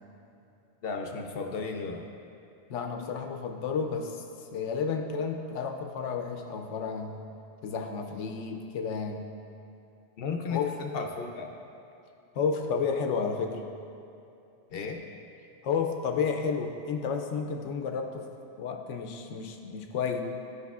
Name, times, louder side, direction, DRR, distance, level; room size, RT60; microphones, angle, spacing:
voice 1, 0.8-2.0 10.2-11.5 14.7-15.0, left 5 dB, 60° left, 3 dB, 0.7 m, -34 dB
voice 2, 2.7-4.2 4.5-7.2 7.6-9.3 10.5-10.8 12.3-13.6 15.6-18.3 18.6-20.2, left 5 dB, 90° left, 4 dB, 0.9 m, -31 dB
10.5 x 4.8 x 2.4 m, 2.7 s
omnidirectional pair, 1.2 m